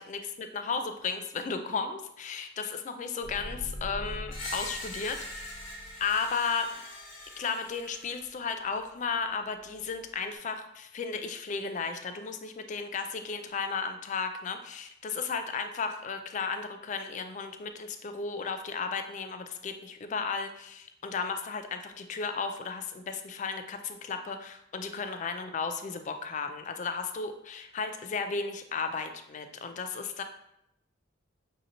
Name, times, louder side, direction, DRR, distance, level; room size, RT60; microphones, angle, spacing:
voice 1, 0.0-5.5 6.0-6.7 7.4-30.2, left 5 dB, 40° left, 8 dB, 0.3 m, -34 dB
sound 1, 3.2-6.3, equal, 65° right, 0.8 m, -42 dB
Screech, 4.3-8.3, left 1 dB, 85° left, 1.1 m, -42 dB
6.1 x 2.8 x 2.6 m, 0.80 s
head